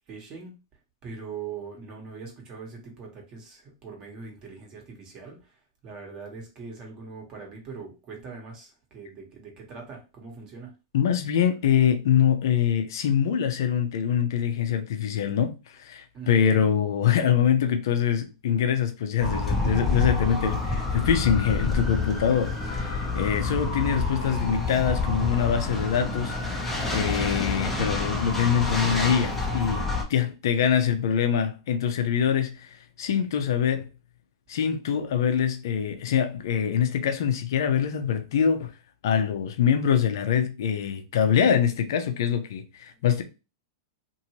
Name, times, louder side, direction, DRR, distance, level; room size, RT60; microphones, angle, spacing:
voice 1, 0.1-0.6 1.0-10.7 12.1-12.3 16.1-16.6 21.5-21.7 26.9-27.4 42.9-43.0, right 5 dB, 35° right, 1.3 m, -42 dB
voice 2, 10.9-33.9 34.5-38.7 39.0-43.2, left 8 dB, 70° left, 0.6 m, -24 dB
sound 1, 19.2-30.0, left 3 dB, 10° left, 0.8 m, -28 dB
2.7 x 2.6 x 3.0 m
hypercardioid pair, 115°, 2 cm